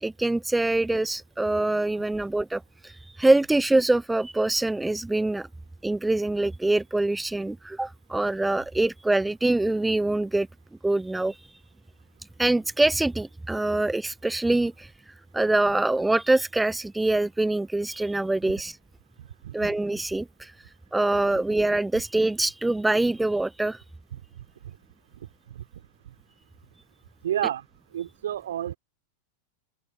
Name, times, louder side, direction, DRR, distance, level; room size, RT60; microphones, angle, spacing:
voice 1, 0.0-5.5 5.8-10.5 10.8-11.4 12.4-18.8 19.5-20.5 20.9-23.8, right 2 dB, 5° right, 0.5 m, -24 dB
voice 2, 19.2-19.5 24.1-24.2 24.6-24.8 25.5-25.6 27.2-27.7 27.9-28.8, right 11 dB, 60° right, 3.6 m, -30 dB
open air
figure-of-eight pair, 90°, 0 cm